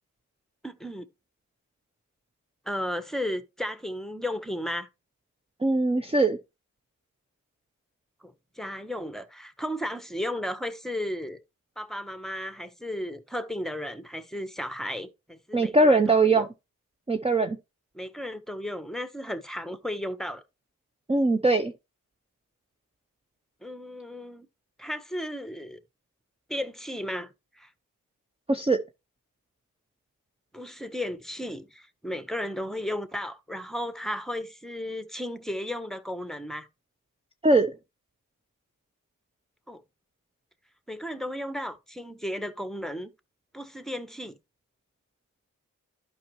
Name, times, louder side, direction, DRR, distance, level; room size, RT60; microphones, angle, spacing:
voice 1, 0.6-1.1 2.7-4.9 8.2-11.4 11.8-16.5 17.9-20.4 23.6-24.5 24.8-25.8 26.5-27.7 30.5-36.7 39.7-39.8 40.9-43.1 43.5-44.4, left 1 dB, ahead, 1.1 m, -34 dB
voice 2, 5.6-6.4 15.5-16.5 17.1-17.6 21.1-21.7 28.5-28.8 37.4-37.7, right 2 dB, 15° right, 0.7 m, -21 dB
11.5 x 5.5 x 3.1 m
supercardioid pair, 45°, 35 cm